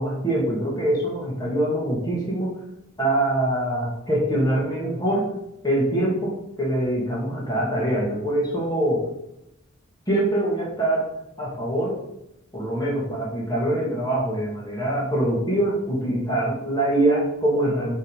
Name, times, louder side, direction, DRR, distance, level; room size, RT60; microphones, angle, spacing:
voice 1, 0.0-2.5 3.0-5.3 5.6-9.1 10.1-11.1 11.4-12.0 12.5-17.9, right 1 dB, 20° left, -4 dB, 2.1 m, -24 dB
8.3 x 3.8 x 5.0 m, 0.85 s
head